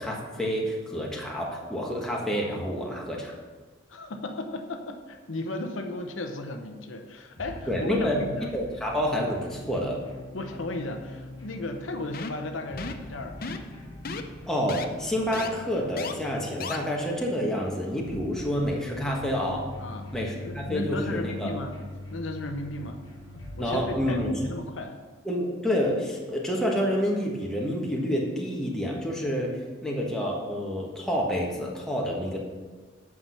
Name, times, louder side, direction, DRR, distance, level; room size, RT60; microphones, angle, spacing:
voice 1, 0.0-3.3 7.7-8.2 8.5-10.0 14.5-19.6 20.1-21.5 23.6-24.3 25.2-32.4, equal, 5° left, -3 dB, 1.3 m, -28 dB
voice 2, 3.9-8.5 10.3-13.4 19.8-20.1 20.4-21.8 22.1-23.0 23.6-25.0, left 2 dB, 80° left, 5 dB, 0.8 m, -35 dB
sound 1, 7.4-24.4, left 1 dB, 25° left, 1.6 m, -43 dB
sound 2, 12.1-12.4 12.8-13.1 13.4-13.7 14.0-14.2 14.7-14.9 15.3-15.5 16.0-16.1 16.6-16.8, left 4 dB, 45° left, 0.6 m, -34 dB
9.0 x 6.1 x 5.6 m, 1.4 s
head